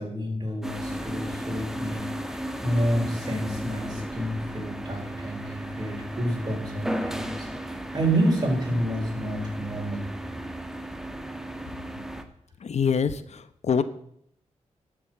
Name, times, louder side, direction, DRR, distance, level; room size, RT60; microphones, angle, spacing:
voice 1, 0.0-10.1, right 1 dB, 35° right, 0 dB, 5.2 m, -29 dB
sound 1, 0.6-12.2, right 1 dB, 5° right, 1.4 m, -35 dB
voice 2, 12.6-13.8, left 6 dB, 65° left, 13 dB, 0.8 m, -25 dB
12.0 x 7.2 x 8.2 m, 0.69 s
cardioid pair, 70°, 12 cm